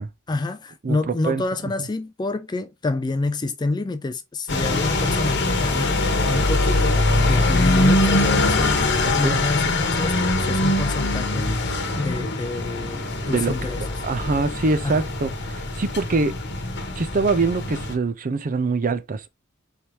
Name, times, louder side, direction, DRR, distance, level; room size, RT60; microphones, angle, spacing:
voice 1, 0.3-6.0 6.3-11.6 12.0-13.8 14.8-15.0, left 2 dB, 20° left, 0.4 m, -28 dB
voice 2, 0.8-1.4 9.0-9.4 13.3-16.4 17.0-19.3, right 3 dB, 40° right, 0.5 m, -24 dB
sound 1, 4.5-17.9, left 2 dB, 55° left, 1.1 m, -22 dB
4.5 x 3.4 x 2.8 m
head